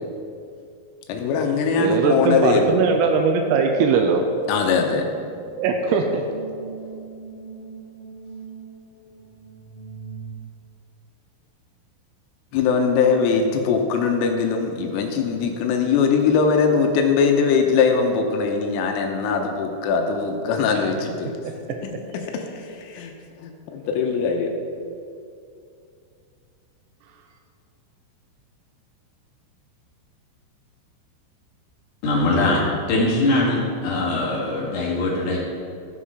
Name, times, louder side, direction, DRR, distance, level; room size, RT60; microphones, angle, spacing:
voice 1, 1.1-2.8 4.5-5.1 12.5-21.3 21.8-23.1 23.4-24.5, left 5 dB, 85° left, 3 dB, 3.4 m, -21 dB
sound 1, 1.5-10.3, right 5 dB, 35° left, 3.1 m, -42 dB
voice 2, 1.8-4.2 5.6-6.3, right 5 dB, 85° right, 3 dB, 3.3 m, -20 dB
voice 3, 32.0-35.4, left 2 dB, 50° left, -6 dB, 3.0 m, -22 dB
16.0 x 5.7 x 4.9 m, 2.4 s
omnidirectional pair, 5.9 m